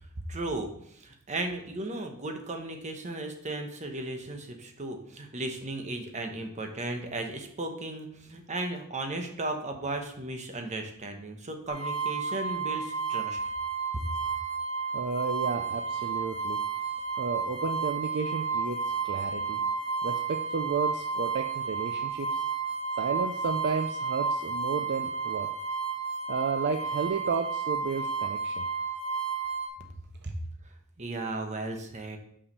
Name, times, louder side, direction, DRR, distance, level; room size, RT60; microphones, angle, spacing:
voice 1, 0.3-0.7 1.0-13.4 30.3-30.4 31.0-32.2, right 2 dB, 35° right, 4 dB, 1.0 m, -35 dB
sound 1, 11.7-29.7, right 5 dB, 75° right, 1.6 m, -32 dB
voice 2, 14.9-16.6 17.2-18.8 19.0-19.6 20.0-22.4 23.0-25.5 26.3-28.7, right 5 dB, 55° right, 6 dB, 0.4 m, -32 dB
5.8 x 4.9 x 5.3 m, 0.69 s
head